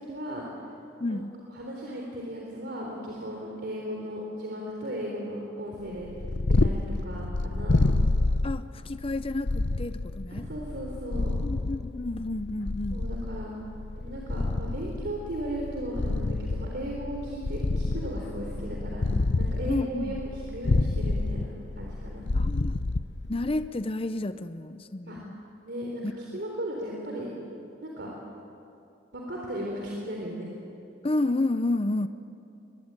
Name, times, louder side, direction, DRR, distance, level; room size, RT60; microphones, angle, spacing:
voice 1, 0.1-0.5 1.1-1.2 1.5-6.1 6.5-7.9 10.3-11.4 12.9-13.5 14.0-19.1 19.4-20.2 20.5-21.5 21.8-22.2 25.1-25.2 25.6-27.3 27.8-28.1 29.1-30.5, equal, 60° right, -2 dB, 3.8 m, -36 dB
voice 2, 1.0-1.3 8.4-10.5 11.4-13.0 19.7-20.2 22.3-22.8 23.3-25.3 26.0-26.4 31.0-32.1, left 2 dB, 30° left, 11 dB, 0.7 m, -30 dB
Purr, 6.0-23.7, left 2 dB, 65° left, 0.8 m, -28 dB
23.0 x 21.5 x 9.0 m, 2.7 s
head